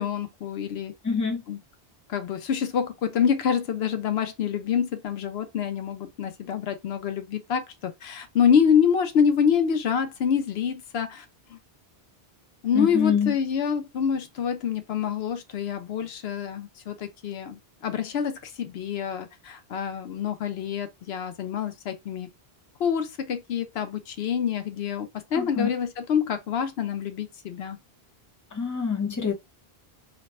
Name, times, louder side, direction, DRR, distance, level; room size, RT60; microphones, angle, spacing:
voice 1, 0.0-0.9 1.5-1.6 2.1-11.2 11.5-11.6 12.6-22.3 22.8-27.8, left 7 dB, 80° left, 0.9 m, -26 dB
voice 2, 1.0-1.4 12.7-13.3 25.3-25.7 28.5-29.3, left 6 dB, 20° left, 0.7 m, -25 dB
3.2 x 2.1 x 4.1 m
omnidirectional pair, 1.0 m